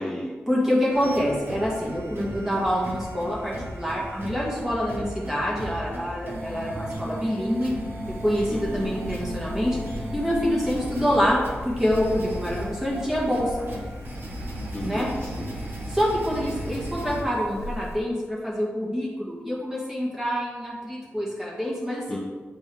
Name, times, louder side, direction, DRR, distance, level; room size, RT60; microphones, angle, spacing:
voice 1, 0.5-7.7 8.2-9.8 10.1-13.6 14.8-15.1 15.9-22.2, equal, 10° right, -5 dB, 1.9 m, -26 dB
sound 1, 0.9-17.2, right 1 dB, 60° right, 1.1 m, -36 dB
sound 2, 8.0-18.0, left 2 dB, 85° left, 0.8 m, -40 dB
voice 2, 8.5-9.0 14.7-15.5 22.1-22.2, left 1 dB, 20° left, -3 dB, 0.8 m, -34 dB
9.8 x 4.4 x 3.6 m, 1.4 s
wide cardioid pair, 175°, 4 cm